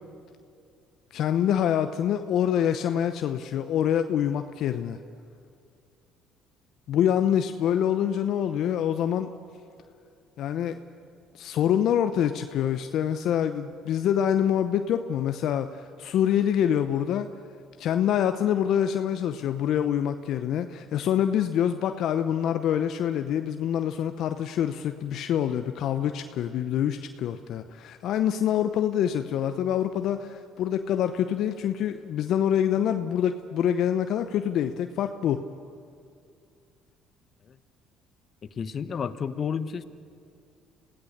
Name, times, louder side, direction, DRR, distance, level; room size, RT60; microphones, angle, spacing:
voice 1, 1.1-5.0 6.9-9.3 10.4-10.8 11.3-17.3 17.8-35.4, left 9 dB, 65° left, 8 dB, 0.8 m, -26 dB
voice 2, 38.6-39.8, left 7 dB, 45° left, 12 dB, 1.1 m, -31 dB
27.0 x 16.5 x 6.7 m, 2.4 s
supercardioid pair, 70°, 0 cm